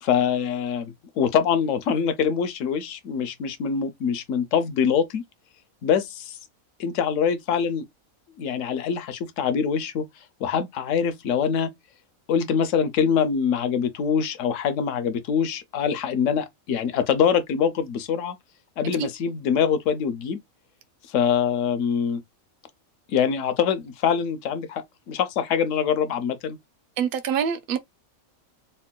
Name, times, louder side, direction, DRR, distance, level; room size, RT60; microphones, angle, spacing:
voice 1, 0.0-5.2 5.8-6.4 6.8-7.8 8.4-10.1 10.4-11.7 12.3-18.4 18.8-20.4 21.1-22.2 23.1-26.6, left 7 dB, 70° left, 0.9 m, -24 dB
voice 2, 27.0-27.8, right 8 dB, 60° right, 0.6 m, -25 dB
4.4 x 2.1 x 2.2 m
omnidirectional pair, 1.5 m